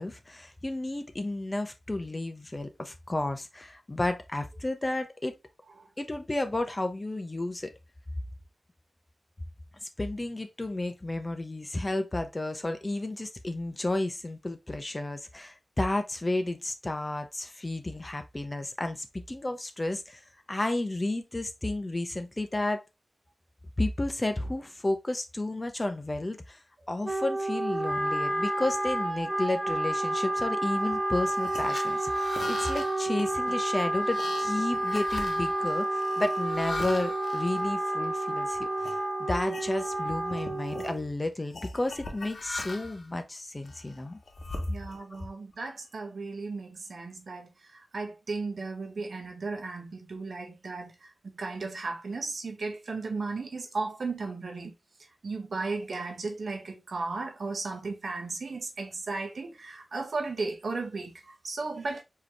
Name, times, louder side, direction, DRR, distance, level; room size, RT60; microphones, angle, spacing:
voice 1, 0.0-5.3 6.0-7.7 10.0-20.2 20.5-22.8 23.8-44.2, left 2 dB, 25° left, 0.8 m, -32 dB
Wind instrument woodwind instrument, 27.0-41.1, right 1 dB, 10° right, 1.1 m, -30 dB
sound 1, 31.2-38.3 38.8-39.0 39.4-40.0 40.3-40.9 41.5-43.1 43.6-45.2, left 3 dB, 70° left, 1.1 m, -41 dB
voice 2, 44.7-54.7 55.2-62.0, right 3 dB, 70° right, 1.2 m, -35 dB
4.7 x 3.1 x 3.3 m
wide cardioid pair, 85°, 0 cm